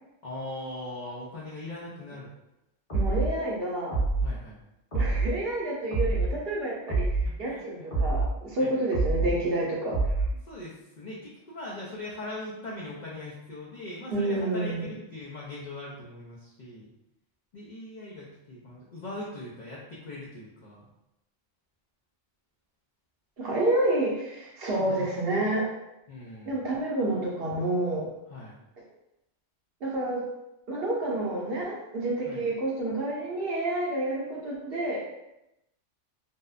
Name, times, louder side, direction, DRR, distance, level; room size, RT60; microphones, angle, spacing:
voice 1, 0.2-2.3 4.2-4.6 7.4-7.9 8.6-8.7 10.5-16.9 17.5-20.9 24.7-25.1 26.1-26.6 28.3-28.6 32.3-32.4, left 2 dB, 70° left, -5 dB, 0.4 m, -40 dB
sound 1, 2.9-3.3 3.9-4.3 4.9-5.3 5.9-6.3 6.9-7.3 7.9-8.3 8.9-9.3 9.9-10.3, right 3 dB, 30° left, 0.9 m, -26 dB
voice 2, 2.9-4.0 4.9-10.1 14.1-14.8 23.4-25.7 26.5-28.1 29.8-30.2 30.7-35.0, right 1 dB, 60° right, -4 dB, 0.7 m, -29 dB
2.7 x 2.1 x 2.3 m, 0.89 s
omnidirectional pair, 1.3 m